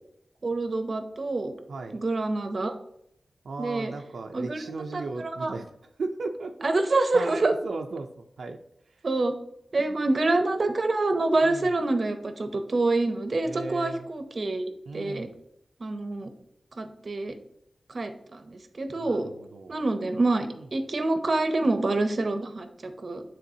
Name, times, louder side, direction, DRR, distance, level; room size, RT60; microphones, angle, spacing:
voice 1, 0.4-1.5 1.9-2.7 3.6-3.9 4.3-4.6 4.9-5.5 6.6-7.5 9.0-9.3 9.7-15.3 15.8-16.3 16.8-17.3 17.9-19.3 19.7-23.2, right 2 dB, 50° right, 8 dB, 0.6 m, -26 dB
voice 2, 1.7-2.0 3.4-5.7 6.0-6.6 7.1-8.6 8.9-9.0 9.8-10.0 11.4-11.7 13.4-14.1 14.9-15.4 18.9-19.8 20.5-20.7, right 3 dB, 85° right, 3 dB, 0.4 m, -36 dB
9.2 x 3.7 x 2.7 m, 0.75 s
wide cardioid pair, 110°, 0 cm